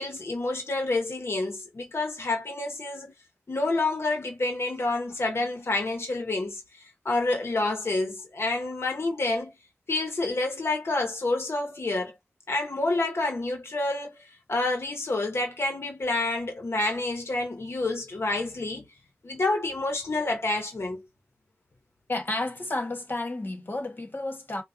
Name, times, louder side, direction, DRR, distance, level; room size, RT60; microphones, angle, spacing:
voice 1, 0.0-3.1 3.5-9.5 9.9-12.2 12.5-18.9 19.2-21.0, left 2 dB, 70° left, 0.9 m, -28 dB
voice 2, 22.1-24.6, left 2 dB, 50° left, 1.5 m, -31 dB
4.6 x 2.3 x 2.7 m
wide cardioid pair, 65°, 4 cm